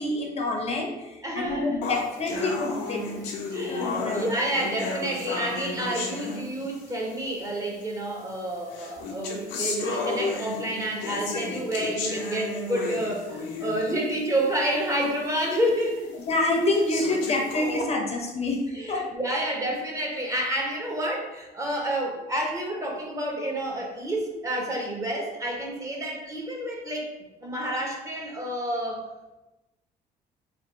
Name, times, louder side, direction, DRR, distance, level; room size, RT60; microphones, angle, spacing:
voice 1, 0.0-3.0 3.7-4.3 16.2-18.6 18.9-19.0 19.3-19.4, left 2 dB, 40° left, 1 dB, 0.6 m, -27 dB
voice 2, 1.2-1.8 3.5-16.1 18.7-27.1 27.4-29.0, right 1 dB, 20° right, 0 dB, 0.8 m, -29 dB
sound 1, 1.8-7.0 7.8-7.9 8.7-14.0 14.4-14.5 15.0-15.1 15.8-15.9 16.7-17.8, left 3 dB, 90° left, 0.7 m, -33 dB
3.4 x 2.4 x 4.0 m, 1.0 s
cardioid pair, 110°, 17 cm